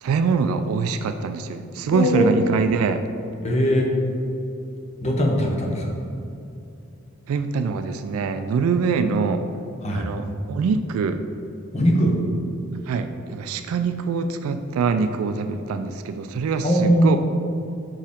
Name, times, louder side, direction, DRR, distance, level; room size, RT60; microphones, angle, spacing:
voice 1, 0.0-3.0 7.3-9.5 9.9-11.2 12.9-17.2, right 5 dB, 80° right, 10 dB, 0.3 m, -24 dB
voice 2, 1.9-2.3 3.4-3.9 5.0-5.9 9.8-10.1 11.7-12.1 16.6-17.2, equal, 30° left, 0 dB, 0.8 m, -20 dB
6.1 x 4.5 x 3.6 m, 2.7 s
head